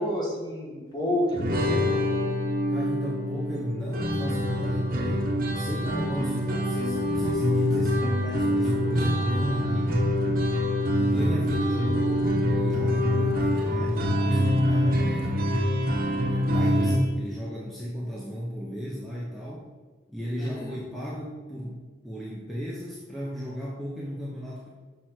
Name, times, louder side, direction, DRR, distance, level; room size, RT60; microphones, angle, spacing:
voice 1, 0.0-2.0 20.4-20.8, left 1 dB, 20° left, -2 dB, 1.6 m, -29 dB
sound 1, 1.3-17.0, equal, 50° right, 1.1 m, -25 dB
voice 2, 2.7-10.1 11.0-15.4 16.3-19.7 20.1-21.8 22.0-24.7, equal, ahead, -6 dB, 0.9 m, -35 dB
6.1 x 6.1 x 4.5 m, 1.4 s
head